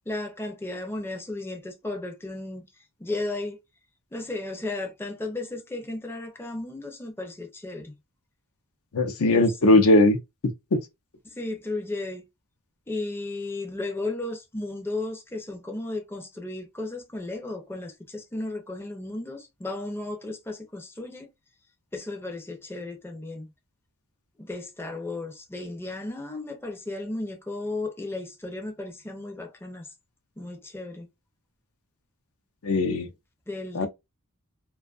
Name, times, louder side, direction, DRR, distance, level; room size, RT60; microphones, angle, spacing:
voice 1, 0.1-2.7 3.0-3.6 4.1-7.9 9.2-9.7 11.2-12.3 12.9-21.3 21.9-23.5 24.4-29.9 30.4-31.1 33.5-33.9, left 2 dB, 10° left, 0.5 m, -34 dB
voice 2, 8.9-10.2 10.7-10.8 32.6-33.1 33.7-33.9, left 2 dB, 70° left, 0.6 m, -19 dB
2.6 x 2.3 x 2.3 m
head